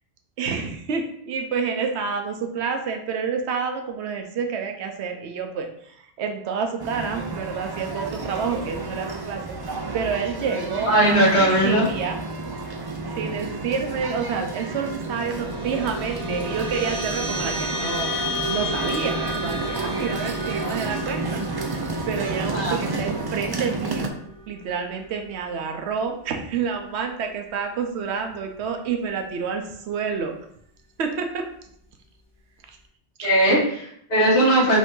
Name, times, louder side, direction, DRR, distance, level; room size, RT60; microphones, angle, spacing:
voice 1, 0.4-9.6 9.9-12.2 13.1-21.8 22.1-24.1 24.5-30.3 31.0-31.5 32.7-32.8 33.2-33.3, right 6 dB, 90° right, 5 dB, 0.9 m, -29 dB
sound 1, 6.8-24.1, right 3 dB, 40° right, 0.3 m, -31 dB
voice 2, 10.9-11.9 22.5-22.8 33.2-34.8, right 1 dB, 75° left, -7 dB, 1.6 m, -19 dB
sound 2, 14.9-25.7, equal, 70° right, 2.3 m, -33 dB
5.1 x 2.7 x 3.7 m, 0.68 s
omnidirectional pair, 1.1 m